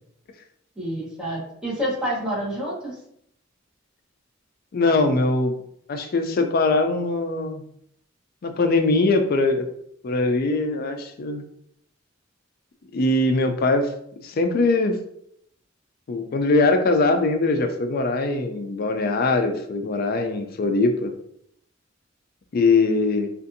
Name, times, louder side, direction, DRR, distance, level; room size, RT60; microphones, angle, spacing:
voice 1, 0.8-3.0, equal, 5° right, -8 dB, 1.0 m, -28 dB
voice 2, 4.7-5.6 5.9-7.6 8.4-9.7 10.0-11.4 12.9-13.9 14.2-15.0 16.1-21.1 22.5-23.3, left 3 dB, 50° left, 6 dB, 0.4 m, -21 dB
2.5 x 2.5 x 2.6 m, 0.71 s
head